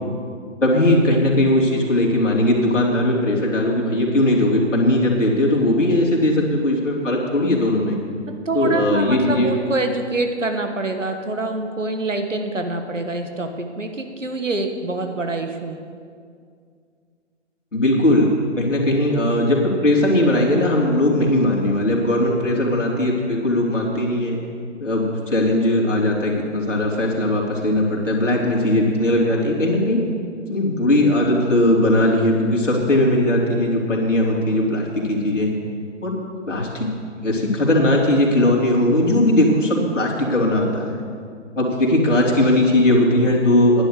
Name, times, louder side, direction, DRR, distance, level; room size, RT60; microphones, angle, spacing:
voice 1, 0.6-8.0 8.5-9.5 17.7-24.4 24.8-30.0 30.5-35.5 36.0-36.2 36.5-36.9 37.1-41.0 41.5-43.8, left 1 dB, 80° left, -3 dB, 3.3 m, -19 dB
voice 2, 8.4-15.8, right 2 dB, 80° right, 6 dB, 1.6 m, -25 dB
10.5 x 10.5 x 6.7 m, 2.2 s
figure-of-eight pair, 135°, 37 cm